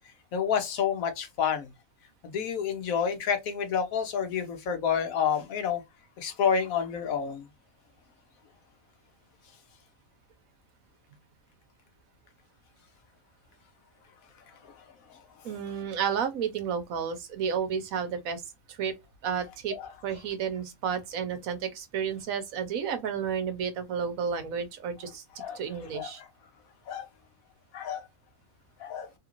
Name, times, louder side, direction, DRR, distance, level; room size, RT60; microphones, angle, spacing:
voice 1, 0.3-1.7 2.2-5.8 6.2-7.5 15.1-15.2 19.7-19.9 25.4-25.6 25.9-26.3 26.9-27.1 27.7-28.1 28.8-29.1, left 7 dB, 85° left, 1.2 m, -29 dB
voice 2, 15.4-18.4 18.7-18.9 19.2-19.8 20.0-25.2 25.5-26.2, right 7 dB, 90° right, 1.2 m, -31 dB
3.3 x 2.5 x 2.9 m
omnidirectional pair, 1.4 m